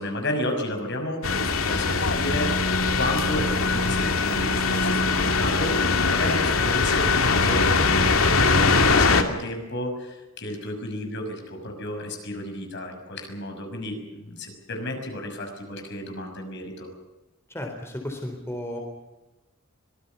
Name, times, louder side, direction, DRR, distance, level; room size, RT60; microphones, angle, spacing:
voice 1, 0.0-16.9, left 1 dB, 55° left, 4 dB, 6.2 m, -32 dB
sound 1, 1.2-9.2, left 4 dB, 90° left, 2.5 m, -21 dB
voice 2, 17.5-18.8, left 1 dB, 10° left, 3 dB, 3.9 m, -33 dB
25.0 x 19.5 x 7.0 m, 1.0 s
head